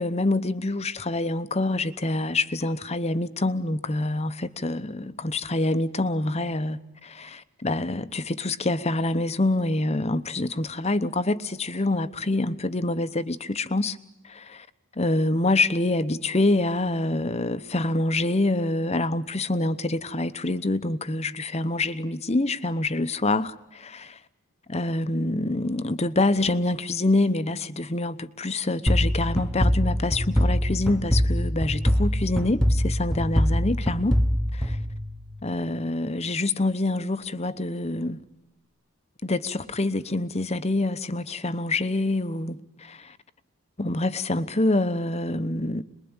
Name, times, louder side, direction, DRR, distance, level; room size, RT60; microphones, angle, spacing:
voice 1, 0.0-14.0 14.2-14.7 15.0-24.1 24.7-34.2 34.5-34.8 35.4-38.2 39.2-43.2 43.8-45.8, left 2 dB, 30° left, 0.9 m, -26 dB
sound 1, 28.9-35.5, equal, 5° left, 1.1 m, -24 dB
27.0 x 21.5 x 8.9 m
head